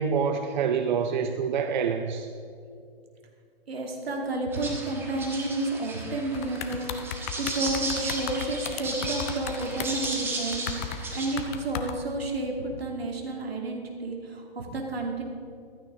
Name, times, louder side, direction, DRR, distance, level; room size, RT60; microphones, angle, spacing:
voice 1, 0.0-2.3, right 6 dB, 50° right, 7 dB, 0.7 m, -26 dB
voice 2, 3.7-15.2, right 2 dB, 80° right, 1 dB, 2.8 m, -31 dB
sound 1, 4.5-11.3, right 2 dB, 5° right, 1.3 m, -35 dB
sound 2, 6.3-10.1 10.5-11.9, left 8 dB, 15° left, 0.4 m, -35 dB
15.0 x 13.5 x 3.8 m, 2.4 s
hypercardioid pair, 140°, 30 cm